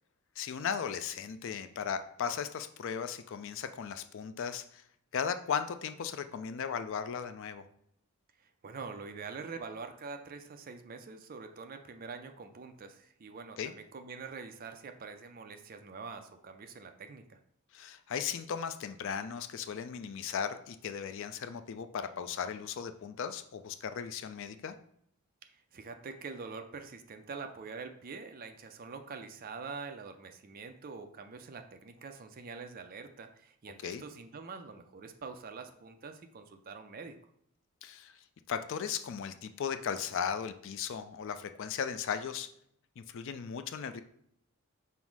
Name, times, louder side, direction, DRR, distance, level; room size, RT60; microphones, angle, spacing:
voice 1, 0.4-4.8 5.1-7.7 13.6-13.7 17.7-24.8 33.8-34.0 37.8-38.2 38.5-42.5 43.0-44.0, left 7 dB, 55° left, 10 dB, 0.3 m, -36 dB
voice 2, 8.4-17.4 25.5-37.2, right 4 dB, 40° right, 7 dB, 0.4 m, -45 dB
5.5 x 2.0 x 4.6 m, 0.70 s
head